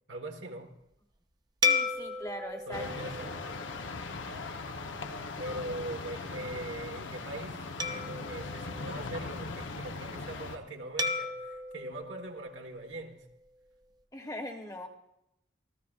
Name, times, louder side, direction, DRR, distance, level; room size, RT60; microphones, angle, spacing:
voice 1, 0.1-0.7 2.7-3.9 5.4-13.3, right 1 dB, 85° right, 1.6 m, -41 dB
voice 2, 1.6-2.9 14.1-14.9, equal, 20° left, 1.1 m, -40 dB
sound 1, 1.6-4.3 4.9-5.1 7.8-9.6 11.0-13.3, left 3 dB, 20° right, 0.6 m, -35 dB
sound 2, 2.7-10.6, left 3 dB, 85° left, 1.0 m, -39 dB
27.0 x 14.5 x 2.5 m
head